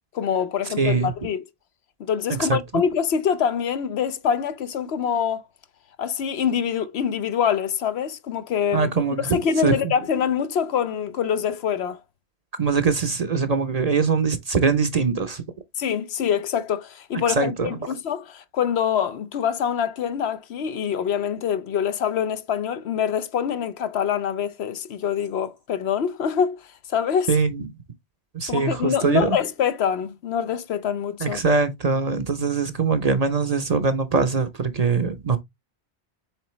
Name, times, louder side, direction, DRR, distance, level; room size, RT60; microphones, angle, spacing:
voice 1, 0.2-1.4 2.0-5.4 6.0-8.9 9.3-12.0 15.8-26.6 26.9-27.3 28.5-31.4, left 8 dB, 75° left, 0.9 m, -25 dB
voice 2, 0.8-1.1 2.4-2.8 8.7-9.4 9.6-9.9 12.6-15.4 17.3-17.7 27.3-27.7 28.3-29.4 31.2-35.4, right 4 dB, 40° right, 0.7 m, -22 dB
7.8 x 3.9 x 3.1 m
omnidirectional pair, 1.1 m